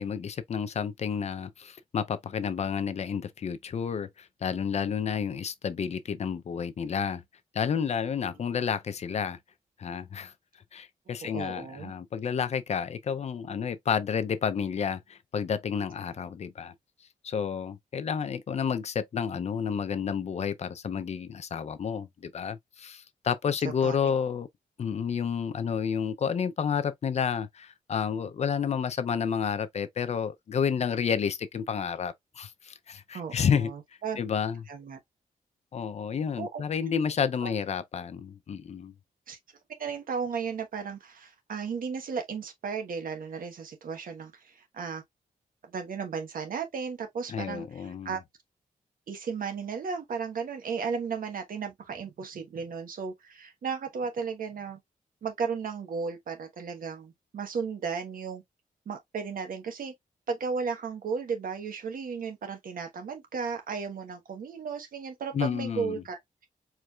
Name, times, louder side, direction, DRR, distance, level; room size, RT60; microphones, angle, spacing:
voice 1, 0.0-7.2 7.5-9.4 9.8-10.3 10.7-16.7 17.2-24.5 24.8-33.7 34.2-34.6 35.7-38.9 47.3-48.2 65.3-66.0, left 7 dB, 45° left, 0.6 m, -30 dB
voice 2, 11.2-11.9 23.6-24.0 33.1-34.2 34.7-35.0 36.4-36.6 37.4-37.5 39.3-39.4 39.8-45.0 45.6-48.2 49.1-54.8 55.2-58.4 58.9-59.9 60.3-66.2, right 5 dB, 65° right, 1.1 m, -35 dB
4.6 x 3.2 x 2.4 m
wide cardioid pair, 160°, 15 cm